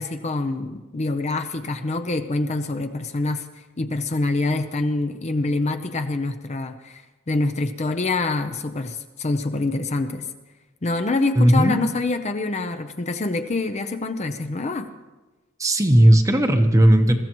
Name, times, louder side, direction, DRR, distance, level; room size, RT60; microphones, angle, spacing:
voice 1, 0.0-3.5 3.8-10.3 10.8-14.9, left 2 dB, 35° left, 8 dB, 0.7 m, -25 dB
voice 2, 11.4-11.8 15.6-17.2, right 1 dB, 15° right, 6 dB, 0.9 m, -15 dB
21.5 x 14.5 x 3.1 m, 1.2 s
head